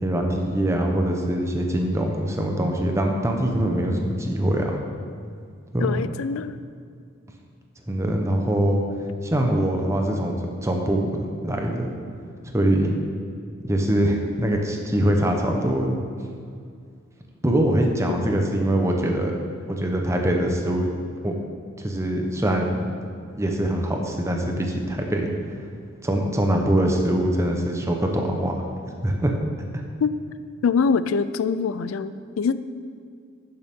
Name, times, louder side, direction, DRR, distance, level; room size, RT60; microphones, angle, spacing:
voice 1, 0.0-4.8 5.7-6.0 7.9-8.8 9.2-11.9 12.5-13.0 13.6-16.0 17.4-19.3 19.7-20.9 21.2-21.3 21.8-22.9 23.3-25.3 26.0-28.6 29.0-29.3, right 1 dB, 15° right, 2 dB, 0.8 m, -23 dB
voice 2, 5.8-6.5 18.1-18.2 30.0-30.1 30.6-32.6, left 5 dB, 85° left, 14 dB, 0.4 m, -24 dB
11.0 x 6.7 x 3.6 m, 2.2 s
head